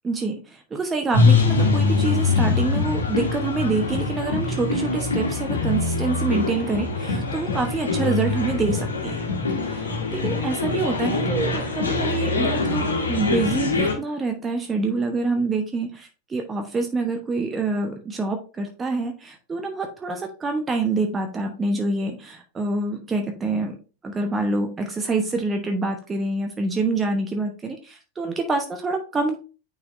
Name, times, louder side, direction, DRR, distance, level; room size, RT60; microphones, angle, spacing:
voice 1, 0.0-0.4 0.7-9.3 9.7-23.8 24.0-29.4, right 3 dB, 15° right, 4 dB, 1.0 m, -26 dB
sound 1, 1.1-13.9, left 3 dB, 70° left, 1.6 m, -23 dB
9.6 x 4.1 x 2.6 m, 0.34 s
figure-of-eight pair, 90°, 0 cm